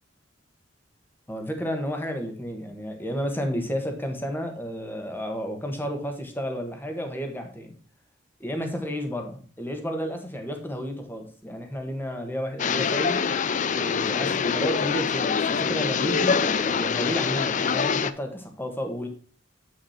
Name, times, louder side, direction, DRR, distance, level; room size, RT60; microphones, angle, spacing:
voice 1, 1.3-7.7 8.4-13.2 13.7-19.1, equal, 10° left, 4 dB, 1.6 m, -31 dB
sound 1, 12.6-18.1, left 6 dB, 40° left, 0.4 m, -25 dB
8.3 x 6.2 x 4.3 m, 0.40 s
head